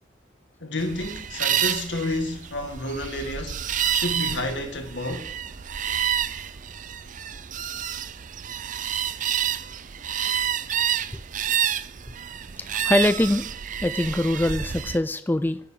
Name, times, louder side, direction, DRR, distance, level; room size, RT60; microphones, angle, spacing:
voice 1, 0.6-3.6 3.9-5.3, left 1 dB, 75° left, 2.1 m, -30 dB
sound 1, 0.8-15.0, right 9 dB, 45° right, 0.5 m, -29 dB
voice 2, 12.6-13.5 13.8-15.6, left 1 dB, 10° left, 0.4 m, -23 dB
9.8 x 7.1 x 9.1 m
head